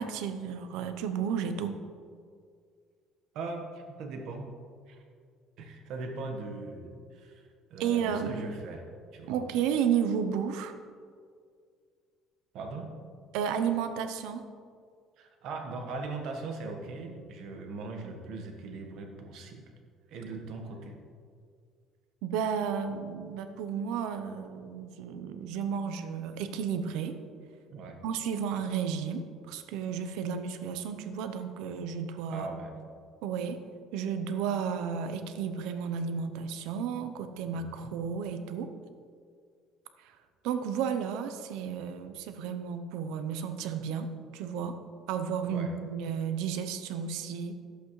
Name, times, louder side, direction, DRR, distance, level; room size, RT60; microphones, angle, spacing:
voice 1, 0.0-1.8 7.8-8.5 9.3-10.7 13.3-14.5 22.2-27.2 28.0-32.5 33.2-33.6 33.9-38.7 40.0-40.2 40.4-44.8 45.1-47.6, right 7 dB, 85° right, 9 dB, 0.7 m, -32 dB
voice 2, 3.3-4.5 4.9-5.0 5.6-7.4 7.7-8.8 9.1-9.4 12.5-12.9 15.2-19.6 20.1-20.9 27.7-28.0 32.3-32.7 37.5-37.9 45.5-45.7, right 3 dB, 65° right, 3 dB, 1.4 m, -40 dB
11.5 x 8.1 x 3.2 m, 2.1 s
cardioid pair, 140°, 0 cm